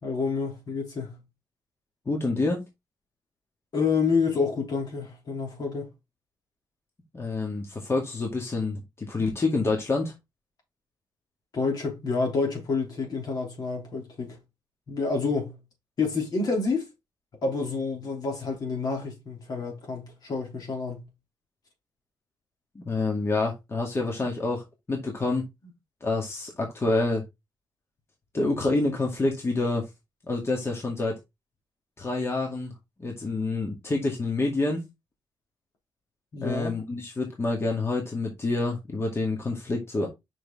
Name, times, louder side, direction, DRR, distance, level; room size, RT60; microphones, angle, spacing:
voice 1, 0.0-1.2 3.7-5.9 11.5-14.4 14.9-15.6 16.0-16.9 17.4-21.0 36.3-36.7, left 4 dB, 65° left, 3.1 m, -28 dB
voice 2, 2.1-2.6 7.1-10.1 22.8-25.5 26.0-27.2 28.3-29.8 30.2-31.1 32.0-32.7 33.0-34.9 36.4-40.1, left 3 dB, 35° left, 2.1 m, -27 dB
5.8 x 5.0 x 3.6 m
cardioid pair, 70°, 7 cm